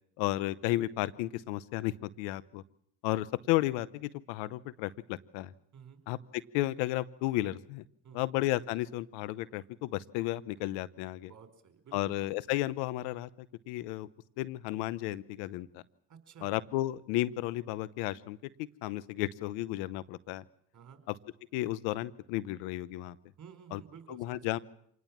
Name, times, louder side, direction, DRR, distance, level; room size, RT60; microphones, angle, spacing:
voice 1, 0.2-2.6 3.0-5.5 6.1-7.8 8.1-11.3 11.9-13.3 13.7-14.1 14.4-15.8 16.4-20.4 21.1-21.2 21.5-23.2 23.7-23.8 24.1-24.6, left 16 dB, 90° left, 18 dB, 0.9 m, -33 dB
voice 2, 11.2-12.1 16.1-16.5 20.7-21.0 23.4-24.4, right 7 dB, 50° right, 8 dB, 4.7 m, -52 dB
26.5 x 19.0 x 7.4 m, 0.67 s
supercardioid pair, 70°, 39 cm